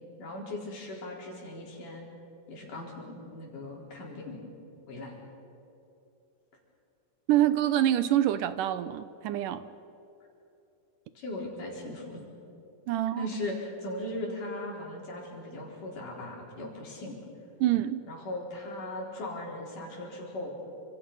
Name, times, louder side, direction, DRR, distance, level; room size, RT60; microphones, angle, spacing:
voice 1, 0.2-2.0 2.5-4.4 4.9-5.2 11.2-12.2 12.9-17.2 18.1-20.5, left 1 dB, 65° left, -2 dB, 5.8 m, -38 dB
voice 2, 7.3-9.7 12.9-13.3 17.6-18.0, right 12 dB, 80° right, 12 dB, 2.2 m, -26 dB
28.5 x 27.0 x 5.6 m, 2.9 s
omnidirectional pair, 4.0 m